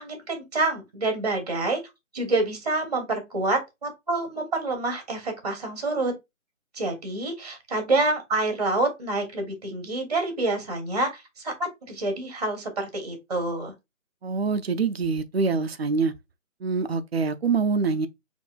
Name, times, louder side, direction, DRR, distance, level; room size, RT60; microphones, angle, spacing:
voice 1, 0.0-1.8 2.1-6.1 6.7-13.7, right 2 dB, 30° right, 0.9 m, -27 dB
voice 2, 14.2-16.1 16.6-18.1, right 4 dB, 50° right, 0.5 m, -25 dB
5.4 x 2.6 x 2.3 m
hypercardioid pair, 170°, 40 cm